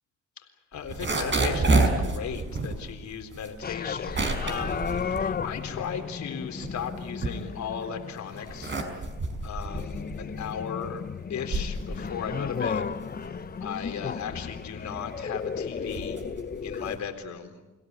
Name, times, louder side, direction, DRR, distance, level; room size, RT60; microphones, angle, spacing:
voice 1, 0.7-8.8 9.4-11.0 11.3-12.9 13.6-16.3 16.6-17.5, left 7 dB, 65° left, 6 dB, 3.9 m, -36 dB
sound 1, 0.7-6.1 6.4-7.9 8.3-17.1, right 2 dB, 40° right, 5.4 m, -30 dB
sound 2, 3.6-17.0, left 6 dB, 30° left, 0.9 m, -34 dB
30.0 x 17.0 x 9.5 m, 1.2 s
cardioid pair, 90°, 30 cm